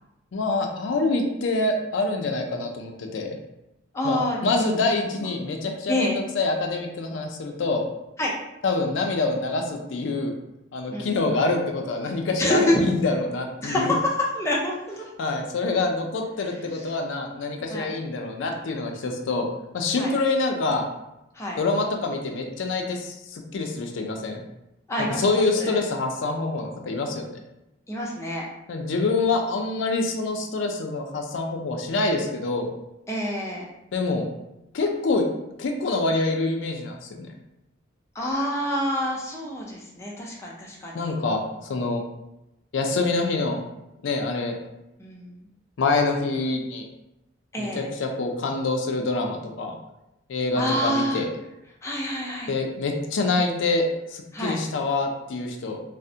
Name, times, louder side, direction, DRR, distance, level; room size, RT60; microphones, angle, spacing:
voice 1, 0.3-3.3 4.0-7.8 8.6-10.3 10.7-14.0 15.2-19.5 19.7-20.8 21.6-24.4 25.0-27.4 28.7-32.7 33.9-34.3 34.7-35.3 35.6-37.3 40.9-42.0 42.7-43.6 44.0-44.6 45.8-46.9 47.6-49.8 50.3-51.3 52.5-55.8, left 3 dB, 85° left, 2 dB, 0.4 m, -26 dB
voice 2, 3.9-4.4 4.7-5.1 5.9-6.2 8.2-8.3 10.9-11.1 12.4-12.8 13.6-14.0 14.3-15.0 16.7-16.9 17.7-17.9 20.0-20.1 21.3-21.6 24.9-25.8 27.9-28.4 33.1-33.6 38.1-41.1 42.8-43.0 45.0-45.4 47.5-47.9 50.6-51.2 51.8-52.5 54.3-54.6, left 1 dB, 15° left, -3 dB, 0.5 m, -27 dB
3.3 x 2.1 x 2.7 m, 0.90 s
head